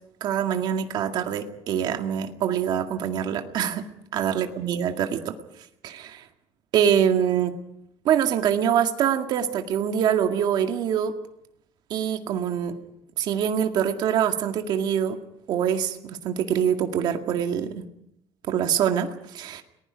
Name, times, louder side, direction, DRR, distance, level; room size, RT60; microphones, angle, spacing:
voice 1, 0.2-3.9 4.1-5.4 5.8-6.2 6.7-7.6 8.0-11.1 11.9-12.7 13.2-15.2 15.5-17.9 18.5-19.6, right 9 dB, 50° right, 5 dB, 2.0 m, -24 dB
30.0 x 20.0 x 5.2 m, 0.77 s
cardioid pair, 170°, 10 cm